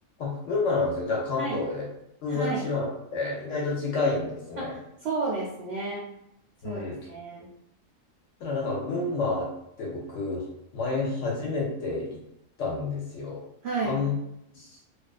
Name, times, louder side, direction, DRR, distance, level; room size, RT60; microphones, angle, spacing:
voice 1, 0.2-1.9 2.2-4.7 6.6-7.0 8.4-9.5 9.8-10.4 10.7-12.2 12.6-13.4 13.8-14.1 14.5-14.7, left 3 dB, 65° left, -3 dB, 0.8 m, -29 dB
voice 2, 2.3-2.6 4.6-6.1 6.6-6.8 7.1-7.5 13.6-14.1, right 3 dB, 65° right, -4 dB, 0.6 m, -31 dB
2.4 x 2.3 x 2.3 m, 0.78 s
omnidirectional pair, 1.5 m